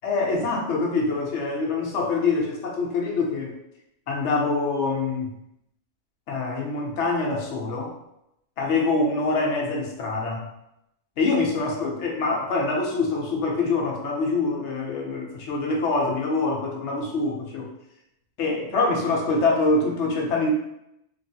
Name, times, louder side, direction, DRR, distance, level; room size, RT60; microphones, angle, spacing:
voice 1, 0.0-3.5 4.1-5.3 6.3-7.9 8.6-10.5 11.2-17.7 18.4-20.5, left 3 dB, 65° left, 0 dB, 0.9 m, -25 dB
3.0 x 2.4 x 2.7 m, 0.81 s
omnidirectional pair, 1.4 m